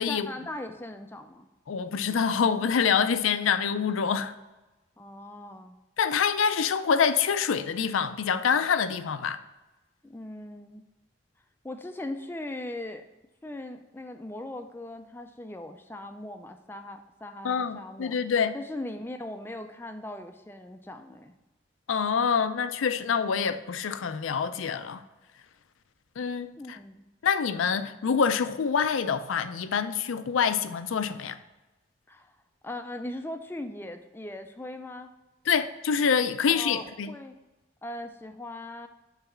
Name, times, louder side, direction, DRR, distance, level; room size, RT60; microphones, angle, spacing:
voice 1, 0.1-1.5 5.0-5.7 10.0-10.8 11.6-13.0 13.4-18.2 18.5-21.3 26.6-27.0 32.1-32.4 32.6-35.1 36.5-37.3 37.8-38.9, left 1 dB, 10° left, 0.3 m, -39 dB
voice 2, 1.7-4.3 6.0-9.4 17.4-18.5 21.9-25.0 26.2-26.8 27.2-31.4 35.5-37.1, left 6 dB, 90° left, 0.4 m, -26 dB
5.8 x 4.0 x 5.5 m
head